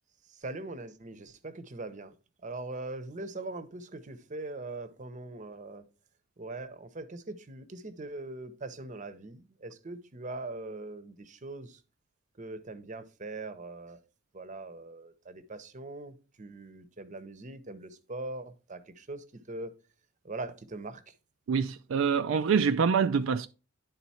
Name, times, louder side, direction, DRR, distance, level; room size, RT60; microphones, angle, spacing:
voice 1, 0.4-2.1 2.4-5.8 6.4-11.8 12.4-14.0 14.3-19.8 20.2-21.0, right 2 dB, 40° right, 0.8 m, -41 dB
voice 2, 21.5-23.5, right 6 dB, 75° right, 0.4 m, -25 dB
10.5 x 3.9 x 4.2 m
head